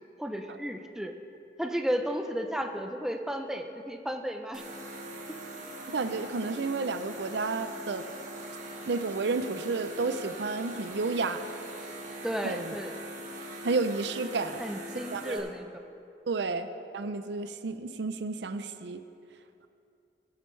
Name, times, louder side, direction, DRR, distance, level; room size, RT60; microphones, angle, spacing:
voice 1, 0.2-1.1 1.6-4.6 5.3-5.4 12.2-12.9 14.6-15.8, equal, 5° right, 4 dB, 0.5 m, -33 dB
sound 1, 4.5-15.4, right 1 dB, 45° right, 1.4 m, -42 dB
voice 2, 5.9-8.1 8.9-11.4 12.4-12.6 13.6-14.6 15.1-15.4 16.3-16.7 16.9-19.0, right 3 dB, 75° right, 10 dB, 0.5 m, -31 dB
19.0 x 8.8 x 3.2 m, 2.6 s
head